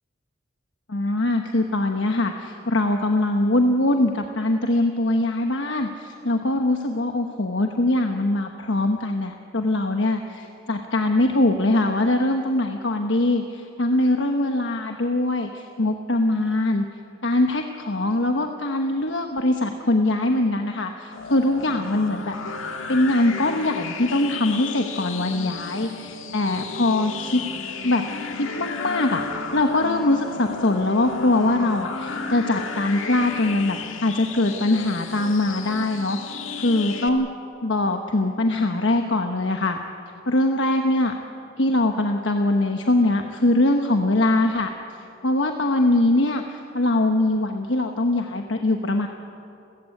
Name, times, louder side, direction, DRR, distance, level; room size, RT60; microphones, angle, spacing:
voice 1, 0.9-16.8 17.2-22.3 22.9-27.4 27.8-28.1 28.3-29.2 29.5-37.3 37.6-39.8 40.3-41.1 41.6-44.7 45.2-49.1, left 2 dB, 65° left, 4 dB, 1.1 m, -22 dB
sound 1, 21.1-37.1, left 4 dB, 80° left, 1.9 m, -33 dB
30.0 x 14.5 x 8.5 m, 2.8 s
head